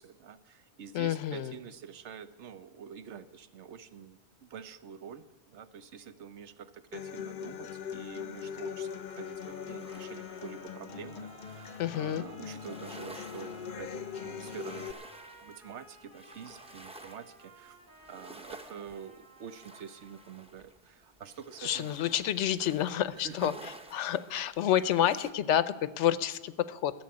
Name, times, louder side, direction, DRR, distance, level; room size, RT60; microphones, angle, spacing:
voice 1, 0.0-15.0 15.4-17.8 18.1-22.0 23.2-23.5, right 7 dB, 80° right, 12 dB, 1.1 m, -47 dB
voice 2, 0.9-1.5 11.8-12.2 21.6-23.5 23.9-26.9, left 11 dB, 90° left, 15 dB, 0.9 m, -29 dB
Human voice / Acoustic guitar, 6.9-14.9, left 7 dB, 55° left, 0.7 m, -41 dB
sound 1, 8.8-20.5, right 1 dB, 50° right, 2.7 m, -56 dB
sound 2, 9.4-12.1 12.6-25.3, right 1 dB, 5° right, 0.5 m, -53 dB
13.5 x 7.2 x 9.6 m, 1.1 s
omnidirectional pair, 1.2 m